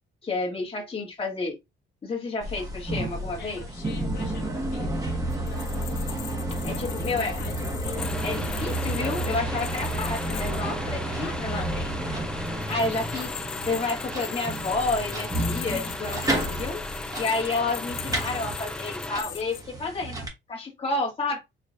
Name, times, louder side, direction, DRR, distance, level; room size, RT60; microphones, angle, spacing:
voice 1, 0.2-1.6 2.0-3.6 6.6-7.4 8.2-11.7 12.5-13.3 13.6-16.8 17.1-21.4, left 3 dB, 30° left, 1.5 m, -30 dB
sound 1, 2.4-20.3, right 1 dB, 15° right, 1.1 m, -31 dB
voice 2, 3.4-4.9 5.4-6.2 7.0-7.6 11.2-11.9, left 6 dB, 60° left, 0.9 m, -45 dB
sound 2, 5.3-10.6 12.5-19.6, left 12 dB, 75° left, 0.5 m, -40 dB
sound 3, 8.0-19.2, left 1 dB, 5° left, 0.4 m, -36 dB
4.6 x 3.1 x 2.5 m
cardioid pair, 130°, 20 cm